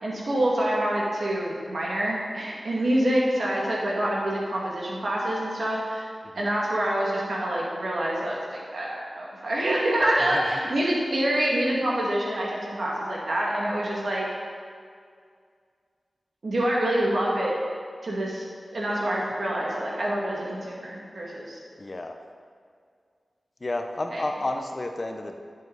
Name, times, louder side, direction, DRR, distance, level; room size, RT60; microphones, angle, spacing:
voice 1, 0.0-6.1 6.3-14.3 16.4-17.6 18.0-18.5 18.7-21.6 24.1-24.2, right 1 dB, 70° right, -4 dB, 2.2 m, -26 dB
voice 2, 10.3-10.6 21.8-22.2 23.6-25.4, left 2 dB, 45° left, 5 dB, 0.8 m, -31 dB
11.0 x 7.3 x 4.0 m, 2.1 s
wide cardioid pair, 60°, 0 cm